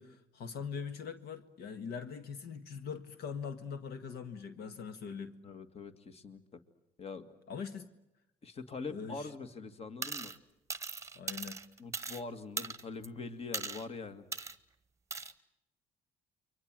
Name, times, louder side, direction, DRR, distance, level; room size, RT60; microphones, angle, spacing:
voice 1, 0.0-5.4 7.5-7.9 8.9-9.3 11.1-11.6, left 6 dB, 70° left, 10 dB, 1.7 m, -42 dB
voice 2, 5.4-6.6 7.0-7.3 8.4-10.3 11.8-14.3, left 4 dB, 35° left, 10 dB, 1.9 m, -43 dB
sound 1, 10.0-10.4 10.7-12.2 12.6-13.1 13.5-13.9 14.3-14.6 15.1-15.3, right 4 dB, 15° right, 1.2 m, -39 dB
29.0 x 24.0 x 7.5 m, 0.86 s
cardioid pair, 110°, 17 cm